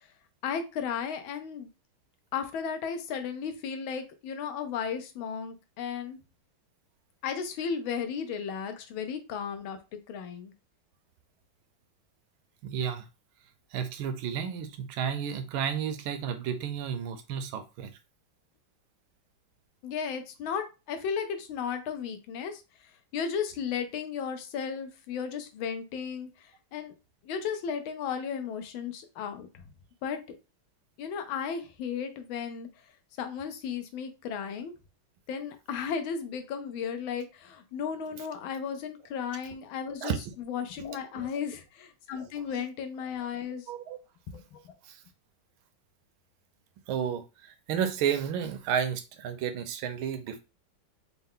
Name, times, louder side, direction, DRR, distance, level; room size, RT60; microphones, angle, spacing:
voice 1, 0.4-1.7 2.3-6.2 7.2-10.5 19.8-22.6 23.1-26.9 27.2-29.5 30.0-30.2 31.0-32.7 33.2-34.7 35.3-43.7 44.3-44.8, left 7 dB, 75° left, 1.5 m, -35 dB
voice 2, 12.6-13.1 13.7-17.9 40.0-40.2 41.2-41.3 42.1-42.2 43.5-44.0 44.9-45.0 46.9-50.4, right 8 dB, 80° right, 1.4 m, -32 dB
4.4 x 2.3 x 3.5 m
omnidirectional pair, 2.2 m